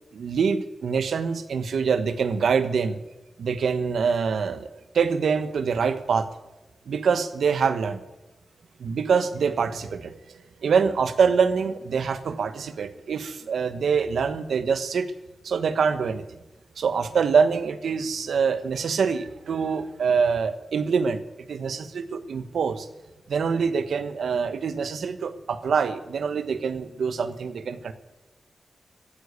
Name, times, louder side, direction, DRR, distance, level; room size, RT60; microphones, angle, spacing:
voice 1, 0.1-3.0 3.4-6.3 6.9-8.0 8.8-15.1 15.4-16.2 16.8-21.2 21.5-22.9 23.3-27.9, right 6 dB, 90° right, 11 dB, 1.0 m, -25 dB
15.0 x 10.0 x 8.4 m, 1.0 s
cardioid pair, 75°, 0 cm